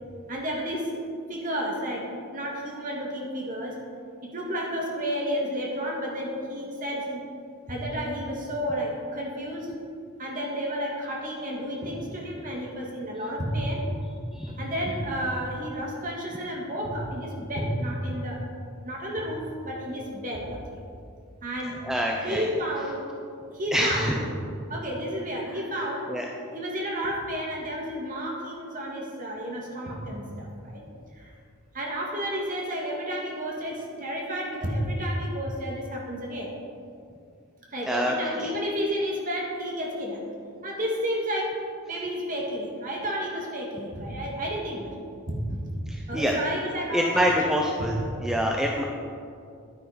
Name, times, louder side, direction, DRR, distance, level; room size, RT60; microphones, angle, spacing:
voice 1, 0.3-2.1 2.3-3.8 4.2-7.2 7.7-9.7 10.2-13.9 14.3-18.4 18.8-20.8 21.4-21.8 22.2-23.0 23.5-24.2 24.7-26.1 26.5-30.8 31.1-31.3 31.7-36.6 37.7-40.2 40.6-41.6 41.9-44.9 45.3-45.7 46.1-47.9 48.6-48.8, equal, 35° right, -2 dB, 2.0 m, -31 dB
voice 2, 21.8-22.5 23.7-24.1 26.1-26.2 37.9-38.5 45.9-46.3 46.9-48.0 48.2-48.8, equal, 5° right, -1 dB, 0.6 m, -26 dB
10.0 x 9.3 x 5.1 m, 2.3 s
head